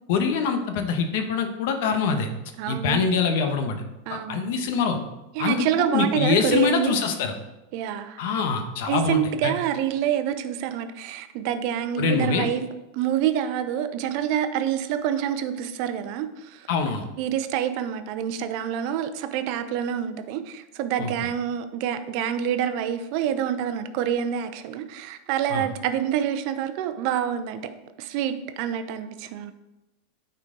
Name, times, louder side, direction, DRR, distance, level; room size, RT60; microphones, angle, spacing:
voice 1, 0.1-2.3 2.7-3.8 4.1-5.0 5.4-7.3 8.2-9.5 12.0-12.5 16.7-17.0 21.0-21.1 25.5-25.7, left 5 dB, 65° left, 5 dB, 1.1 m, -24 dB
voice 2, 2.6-3.0 4.1-4.5 5.3-6.9 7.7-8.2 8.9-12.6 12.9-16.7 17.2-27.6 28.0-29.5, right 10 dB, 55° right, 10 dB, 0.7 m, -27 dB
9.6 x 4.4 x 3.9 m, 0.97 s
hypercardioid pair, 110°, 0 cm